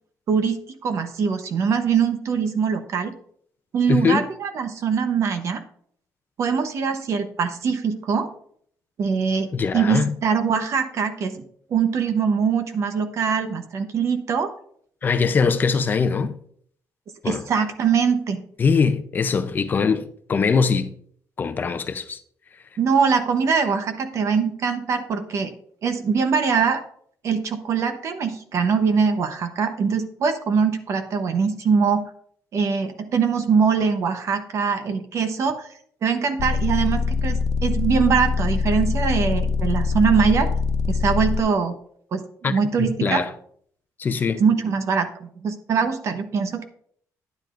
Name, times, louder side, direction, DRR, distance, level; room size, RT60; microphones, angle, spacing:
voice 1, 0.3-3.1 3.7-5.6 6.4-8.3 9.0-11.4 11.7-14.5 17.2-18.4 22.8-25.5 25.8-26.8 27.2-32.0 32.5-35.7 36.0-40.5 40.9-41.8 42.1-43.2 44.4-46.6, right 6 dB, 50° right, 0.9 m, -22 dB
voice 2, 3.9-4.2 9.5-10.1 15.0-16.3 17.2-17.5 18.6-20.9 21.4-22.2 42.4-42.5 42.8-43.3 44.0-44.4, left 5 dB, 30° left, 0.6 m, -22 dB
sound 1, 36.4-41.4, left 4 dB, 75° left, 0.5 m, -23 dB
10.5 x 9.8 x 2.5 m
cardioid pair, 165°, 6 cm